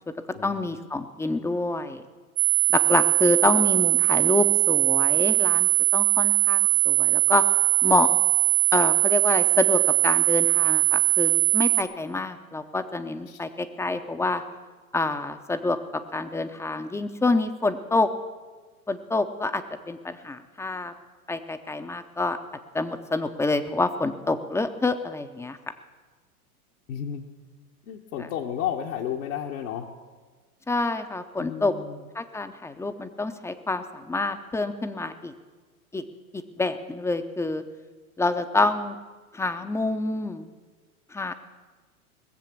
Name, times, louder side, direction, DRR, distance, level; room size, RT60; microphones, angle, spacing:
voice 1, 0.4-2.0 2.7-7.4 7.8-8.1 8.7-14.4 14.9-18.1 18.9-20.9 21.3-22.4 22.7-25.6 30.7-31.7 32.1-35.3 35.9-36.0 36.3-37.6 38.2-39.0 39.3-40.5 41.1-41.3, left 3 dB, 5° left, 9 dB, 0.7 m, -27 dB
sound 1, 2.4-11.8, right 32 dB, 55° right, 1.0 m, -21 dB
voice 2, 26.9-27.2 27.8-29.9 31.4-32.1, left 9 dB, 60° left, 0 dB, 1.4 m, -32 dB
20.0 x 7.5 x 7.4 m, 1.4 s
hypercardioid pair, 100°, 44 cm